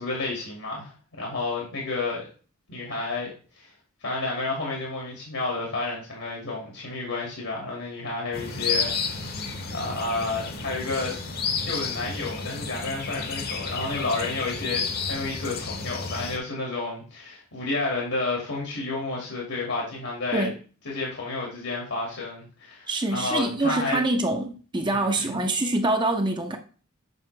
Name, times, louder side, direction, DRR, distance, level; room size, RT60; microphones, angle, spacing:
voice 1, 0.0-2.2 2.7-3.3 3.6-3.7 4.0-9.4 9.7-11.2 11.6-20.5 20.9-24.0 24.9-25.4, left 3 dB, 75° left, 2.1 m, -31 dB
sound 1, 8.3-16.4, left 4 dB, 45° left, 1.0 m, -31 dB
voice 2, 22.9-26.6, right 2 dB, 20° right, 0.6 m, -25 dB
7.6 x 4.9 x 3.2 m
head